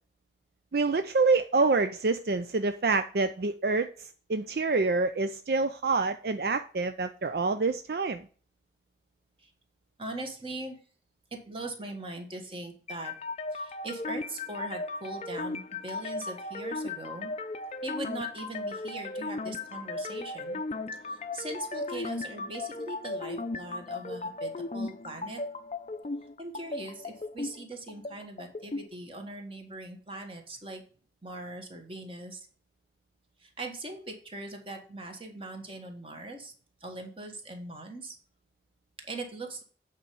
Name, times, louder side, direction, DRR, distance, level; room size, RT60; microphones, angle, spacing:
voice 1, 0.7-3.9 4.3-8.2, right 3 dB, 60° right, 9 dB, 0.5 m, -26 dB
voice 2, 10.0-10.8 11.3-13.1 13.5-17.3 17.8-20.6 21.1-25.4 26.4-30.8 31.2-32.5 33.4-36.5 36.8-38.2 39.0-39.6, right 2 dB, 30° right, 4 dB, 1.7 m, -41 dB
sound 1, 12.9-28.9, left 2 dB, 35° left, 0.5 m, -36 dB
8.6 x 4.5 x 5.4 m, 0.41 s
head